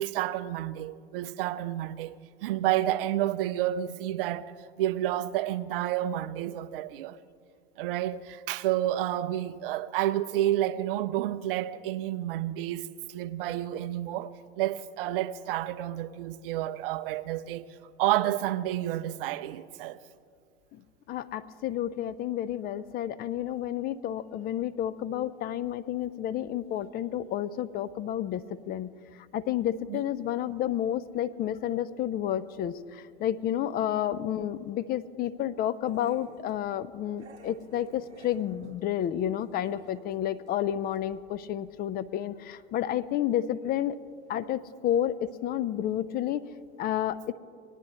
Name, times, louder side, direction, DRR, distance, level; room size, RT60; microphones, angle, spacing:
voice 1, 0.0-2.1 2.4-4.5 4.8-7.2 7.8-20.0 29.9-30.0, right 13 dB, 55° right, 0.5 m, -30 dB
voice 2, 21.1-28.9 29.3-44.0 44.3-46.4 46.8-47.3, left 11 dB, 30° left, 0.4 m, -30 dB
Growling, 35.8-36.6 37.2-40.2 40.5-40.6 40.9-41.0, right 5 dB, 85° right, 1.1 m, -53 dB
19.5 x 10.5 x 3.1 m
figure-of-eight pair, 80°, 32 cm